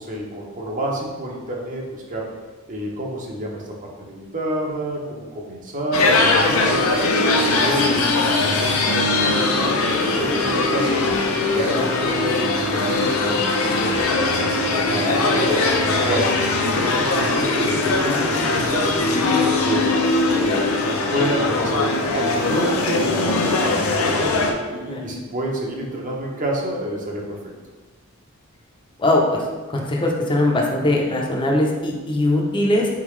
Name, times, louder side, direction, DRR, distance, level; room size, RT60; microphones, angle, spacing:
voice 1, 0.0-2.3 2.7-6.1 6.3-11.0 11.5-13.4 13.8-13.9 14.4-15.6 15.9-16.3 16.6-19.0 19.4-20.0 20.3-24.3 24.7-27.4, right 1 dB, 40° right, -1 dB, 0.8 m, -28 dB
sound 1, 5.9-24.5, left 3 dB, 85° left, 0.6 m, -20 dB
voice 2, 29.0-29.5 29.7-32.9, left 1 dB, 25° left, -1 dB, 0.5 m, -20 dB
4.0 x 3.6 x 3.1 m, 1.3 s
head